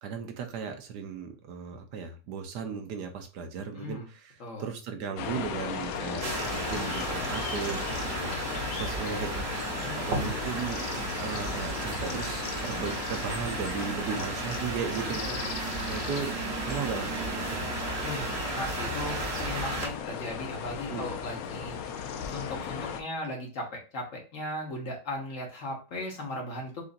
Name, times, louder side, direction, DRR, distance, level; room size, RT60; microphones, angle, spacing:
voice 1, 0.0-9.7 10.0-10.9 11.2-17.8 20.9-21.1, right 6 dB, 85° right, 6 dB, 1.4 m, -37 dB
voice 2, 3.7-4.1 4.4-4.7 9.8-10.0 14.1-14.7 15.0-16.1 18.0-21.8 22.3-26.8, left 1 dB, 50° left, 0 dB, 1.7 m, -38 dB
sound 1, 5.2-23.0, left 7 dB, 70° left, 1.0 m, -37 dB
sound 2, 6.2-19.9, right 3 dB, 45° right, 1.1 m, -34 dB
6.8 x 2.6 x 2.6 m, 0.33 s
omnidirectional pair, 1.7 m